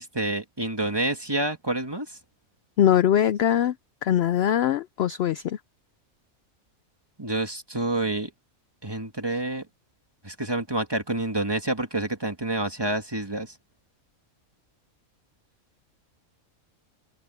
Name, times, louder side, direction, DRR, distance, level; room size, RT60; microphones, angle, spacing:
voice 1, 0.0-2.1 7.2-8.3 8.8-9.6 10.2-13.5, right 2 dB, 15° right, 1.7 m, -28 dB
voice 2, 2.8-3.7 4.0-5.6, left 10 dB, 65° left, 0.6 m, -22 dB
omnidirectional pair, 1.5 m